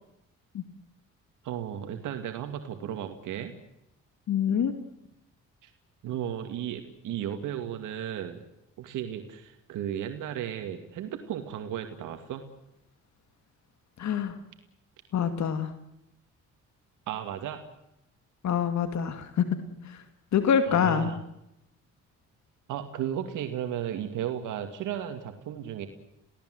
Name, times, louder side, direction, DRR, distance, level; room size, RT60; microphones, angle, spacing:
voice 1, 1.4-3.5 5.6-5.7 6.0-8.4 8.8-12.4 17.1-17.6 20.7-21.2 22.7-25.9, right 10 dB, 85° right, 6 dB, 2.3 m, -34 dB
voice 2, 4.3-4.7 14.0-14.3 15.1-15.7 18.4-19.4 19.8-20.0 20.3-21.1, left 8 dB, 65° left, 9 dB, 2.4 m, -25 dB
29.0 x 17.5 x 7.9 m, 0.83 s
cardioid pair, 90°, 30 cm